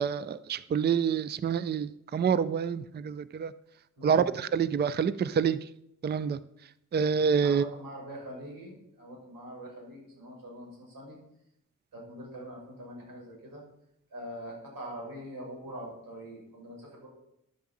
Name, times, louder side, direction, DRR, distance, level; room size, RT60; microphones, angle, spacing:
voice 1, 0.0-3.5 4.0-5.6 6.0-6.4 6.9-7.6, right 7 dB, 30° right, 16 dB, 0.4 m, -27 dB
voice 2, 4.0-4.3 7.4-11.2 11.9-13.6 14.1-17.1, equal, 80° right, -2 dB, 6.2 m, -43 dB
11.0 x 7.4 x 7.3 m, 0.79 s
wide cardioid pair, 150°, 34 cm